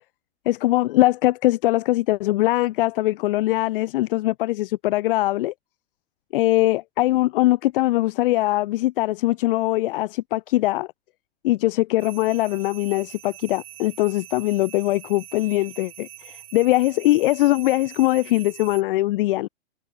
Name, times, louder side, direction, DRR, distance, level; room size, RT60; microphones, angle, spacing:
voice 1, 0.5-5.5 6.3-10.9 11.4-19.5, left 17 dB, 55° left, 0.8 m, -21 dB
sound 1, 12.0-18.8, right 12 dB, 60° right, 7.8 m, -43 dB
figure-of-eight pair, 100°, 33 cm